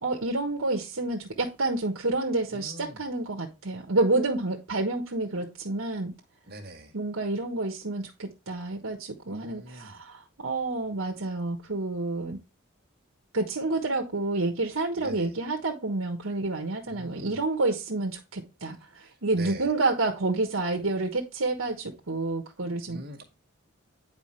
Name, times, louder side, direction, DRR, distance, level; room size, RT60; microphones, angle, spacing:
voice 1, 0.0-6.1 6.9-12.4 13.3-23.0, right 2 dB, 85° right, 1.4 m, -29 dB
voice 2, 2.5-3.0 6.5-6.9 9.3-9.9 15.0-15.3 16.9-17.3 19.3-19.7 22.9-23.2, right 1 dB, 50° right, 1.9 m, -43 dB
9.3 x 5.0 x 3.2 m
head